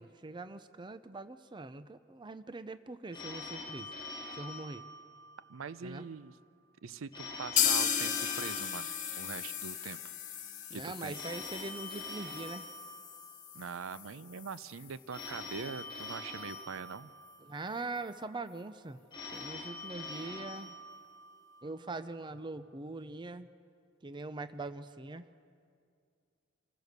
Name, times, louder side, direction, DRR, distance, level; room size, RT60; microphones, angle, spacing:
voice 1, 0.0-3.9 4.4-4.9 5.8-6.1 10.7-12.7 17.4-19.0 19.3-20.8 21.6-23.5 24.0-25.2, right 3 dB, 20° right, 12 dB, 0.5 m, -42 dB
Telephone, 3.1-5.6 7.1-9.6 11.1-13.6 15.1-17.6 19.1-21.6, left 2 dB, 25° left, 3.8 m, -45 dB
voice 2, 5.5-6.4 6.8-10.0 10.7-11.2 13.5-17.1, right 5 dB, 80° right, 16 dB, 0.5 m, -43 dB
sound 1, 7.6-15.3 15.6-15.7 16.0-16.1 16.5-16.6, left 8 dB, 40° left, 1.2 m, -36 dB
26.0 x 15.5 x 6.7 m, 2.3 s
head